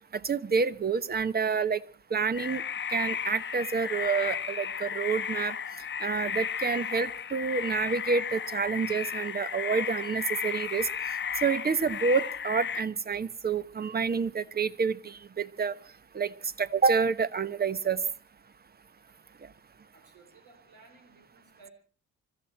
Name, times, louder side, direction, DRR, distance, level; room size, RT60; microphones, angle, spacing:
voice 1, 0.1-1.8 2.1-2.6 2.9-5.5 6.0-10.9 11.4-15.7 16.1-16.3 16.6-18.0, right 5 dB, 30° right, 15 dB, 1.0 m, -28 dB
sound 1, 2.3-12.8, left 7 dB, 40° left, 0.9 m, -34 dB
voice 2, 19.9-21.7, right 4 dB, 80° right, 4 dB, 3.8 m, -57 dB
25.0 x 13.5 x 4.4 m, 0.39 s
cardioid pair, 90°, 30 cm